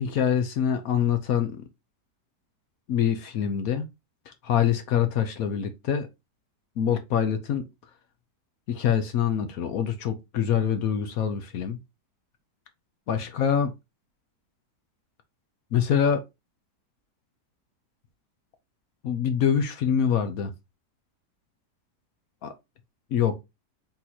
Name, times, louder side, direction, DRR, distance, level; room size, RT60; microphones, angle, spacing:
voice 1, 0.0-1.7 2.9-3.9 4.3-6.1 6.8-7.6 8.7-11.8 13.1-13.7 15.7-16.2 19.0-20.5 22.4-22.5 23.1-23.4, left 8 dB, 65° left, 1.0 m, -25 dB
3.9 x 3.0 x 4.1 m
omnidirectional pair, 1.8 m